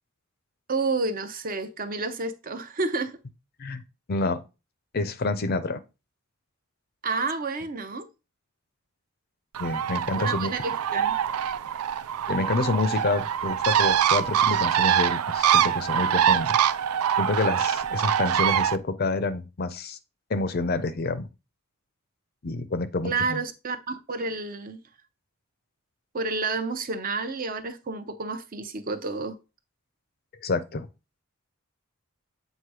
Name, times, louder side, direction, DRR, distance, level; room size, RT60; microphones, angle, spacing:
voice 1, 0.7-3.2 7.0-8.1 10.2-11.1 23.0-24.8 26.1-29.4, right 3 dB, 40° right, 0.6 m, -30 dB
voice 2, 4.1-4.4 4.9-5.8 9.6-10.5 12.3-16.6 17.2-20.0 20.3-21.3 22.4-23.4 30.4-30.9, left 3 dB, 45° left, 0.5 m, -28 dB
Bird, 9.5-18.8, right 9 dB, 90° right, 0.4 m, -24 dB
7.6 x 2.6 x 4.7 m
head